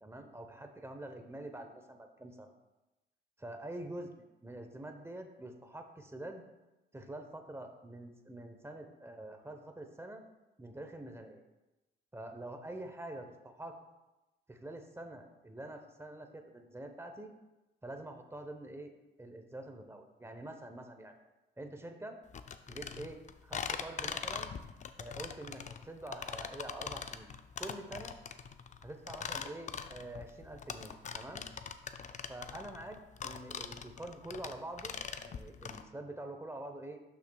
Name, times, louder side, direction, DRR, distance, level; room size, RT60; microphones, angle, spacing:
voice 1, 0.0-2.5 3.4-4.1 4.4-6.4 6.9-10.2 10.6-11.4 12.1-13.8 14.5-17.3 17.8-18.9 19.2-21.2 21.6-22.2 22.7-24.5 25.0-27.3 27.6-28.2 28.8-31.5 32.3-35.0 35.2-37.0, right 1 dB, 15° right, 5 dB, 0.8 m, -46 dB
sound 1, 22.3-35.8, left 6 dB, 40° left, 0.5 m, -42 dB
11.5 x 5.8 x 2.3 m, 1.0 s
cardioid pair, 90°, 20 cm